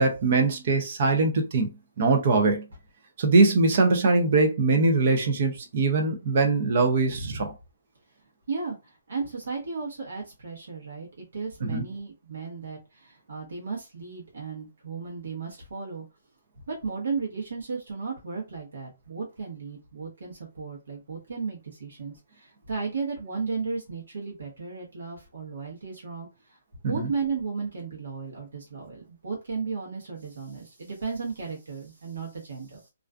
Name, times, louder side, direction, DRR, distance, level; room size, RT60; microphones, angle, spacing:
voice 1, 0.0-1.7 2.0-2.6 3.2-7.5 11.6-11.8 26.8-27.1, right 3 dB, 35° right, 0.4 m, -22 dB
voice 2, 7.1-7.4 8.5-11.1 11.3-16.0 16.7-26.6 26.9-32.8, right 4 dB, 75° right, 0.9 m, -34 dB
2.4 x 2.3 x 2.3 m
hypercardioid pair, 175°, 0 cm